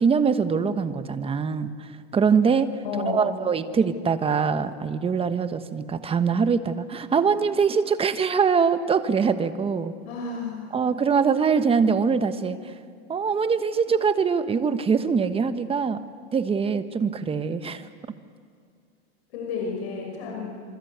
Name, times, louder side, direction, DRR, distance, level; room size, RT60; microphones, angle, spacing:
voice 1, 0.0-2.7 3.1-9.9 10.7-12.6 13.1-16.0 16.3-17.9, right 6 dB, 15° right, 10 dB, 1.3 m, -23 dB
voice 2, 2.8-3.3 10.0-10.7 19.3-20.5, left 4 dB, 65° left, 0 dB, 6.3 m, -31 dB
26.5 x 25.0 x 8.2 m, 2.2 s
supercardioid pair, 130°, 33 cm